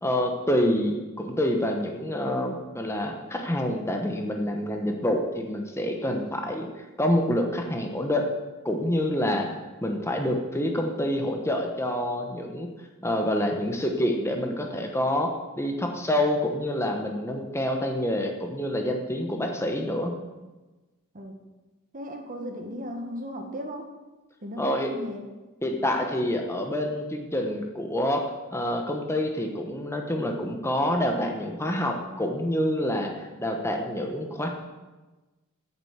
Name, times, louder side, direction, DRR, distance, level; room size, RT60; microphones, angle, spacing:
voice 1, 0.0-6.7 7.0-8.3 8.6-9.5 9.8-12.7 13.0-20.1 24.6-24.9 25.6-28.2 28.5-34.5, left 1 dB, 10° left, 2 dB, 1.1 m, -27 dB
voice 2, 21.9-23.8 24.4-25.3, equal, 40° right, 4 dB, 1.5 m, -36 dB
9.1 x 7.5 x 8.1 m, 1.2 s
head